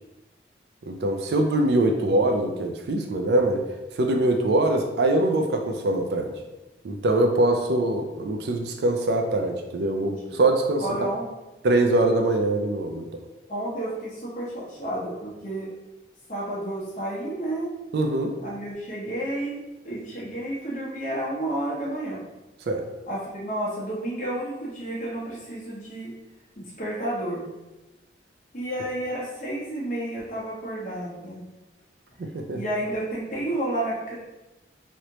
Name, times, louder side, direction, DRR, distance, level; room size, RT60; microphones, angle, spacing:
voice 1, 0.9-3.7 4.0-6.3 6.8-10.8 11.6-13.0 17.9-18.4 22.7-22.8 32.2-32.6, right 2 dB, 65° right, 4 dB, 0.4 m, -23 dB
voice 2, 9.9-10.4 10.8-11.3 13.5-15.7 16.3-17.7 18.4-22.2 23.1-26.1 26.6-27.4 28.5-31.4 32.5-34.2, right 1 dB, 45° left, -6 dB, 1.0 m, -31 dB
3.2 x 2.7 x 2.9 m, 1.0 s
head